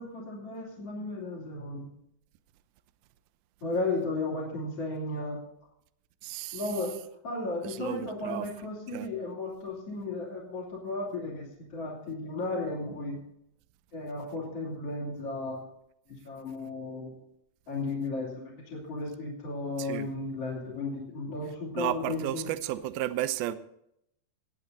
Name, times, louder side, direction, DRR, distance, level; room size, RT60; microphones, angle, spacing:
voice 1, 0.0-1.9 3.6-5.4 6.5-7.0 7.2-13.2 13.9-15.6 16.2-17.1 17.7-22.5, left 2 dB, 35° left, 3.8 m, -34 dB
voice 2, 6.2-6.6 7.6-8.5 8.9-9.1 19.8-20.1 21.8-23.5, right 14 dB, 85° right, 2.1 m, -33 dB
19.5 x 9.0 x 4.0 m
omnidirectional pair, 5.4 m